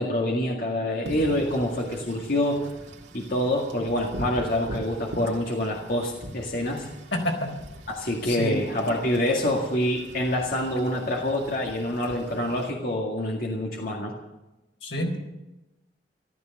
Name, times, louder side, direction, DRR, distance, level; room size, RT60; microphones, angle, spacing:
voice 1, 0.0-2.6 3.1-6.9 8.0-14.1, left 1 dB, 55° left, -1 dB, 2.0 m, -26 dB
Wind / Rain, 1.1-12.7, right 1 dB, 85° right, 2.0 m, -42 dB
voice 2, 7.1-7.5 8.2-8.5 14.8-15.2, left 1 dB, 90° left, 2 dB, 4.2 m, -28 dB
14.0 x 13.5 x 6.6 m, 0.99 s
head